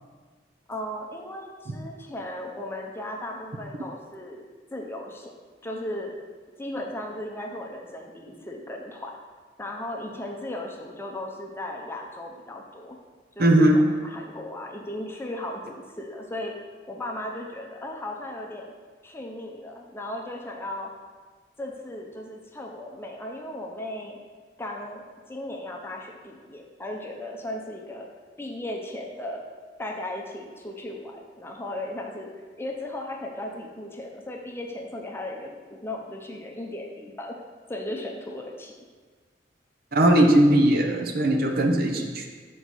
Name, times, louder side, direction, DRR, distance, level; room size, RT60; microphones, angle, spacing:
voice 1, 0.7-4.4 4.7-5.3 5.6-6.1 6.6-9.2 9.6-13.0 13.4-16.5 16.9-18.7 19.0-20.9 21.6-24.2 24.6-28.1 28.4-29.4 29.8-32.3 32.6-37.4 37.7-38.7, left 1 dB, 15° left, 0 dB, 0.6 m, -36 dB
voice 2, 13.4-13.8 39.9-42.3, right 1 dB, 55° right, 3 dB, 0.6 m, -19 dB
6.4 x 4.6 x 4.1 m, 1.5 s
head